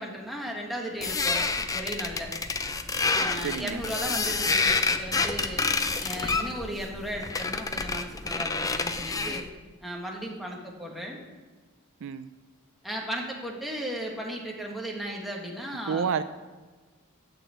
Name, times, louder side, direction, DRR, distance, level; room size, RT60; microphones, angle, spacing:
voice 1, 0.0-2.3 3.1-5.6 6.0-9.4 9.8-11.2 12.8-16.1, equal, ahead, -1 dB, 1.6 m, -36 dB
sound 1, 1.0-9.5, left 4 dB, 15° left, 0.5 m, -28 dB
voice 2, 3.4-3.8 12.0-12.3 15.9-16.2, right 6 dB, 60° right, 13 dB, 0.4 m, -29 dB
9.0 x 6.0 x 7.9 m, 1.4 s
head